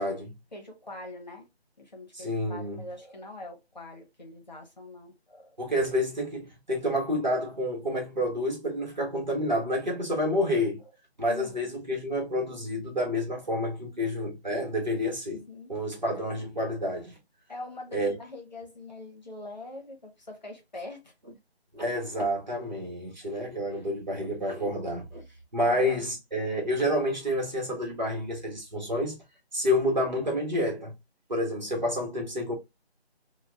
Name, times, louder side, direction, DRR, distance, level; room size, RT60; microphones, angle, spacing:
voice 1, 0.0-0.3 2.1-2.9 5.6-10.8 11.2-15.4 15.7-17.2 17.9-18.1 21.7-25.2 25.5-29.2 29.5-30.9 31.3-32.6, left 1 dB, 45° right, 1.3 m, -29 dB
voice 2, 0.5-1.5 1.8-5.6 11.3-11.7 15.3-15.7 16.1-16.4 17.5-21.1 25.6-26.0, left 2 dB, 40° left, 0.9 m, -43 dB
3.7 x 2.3 x 2.3 m
figure-of-eight pair, 180°, 32 cm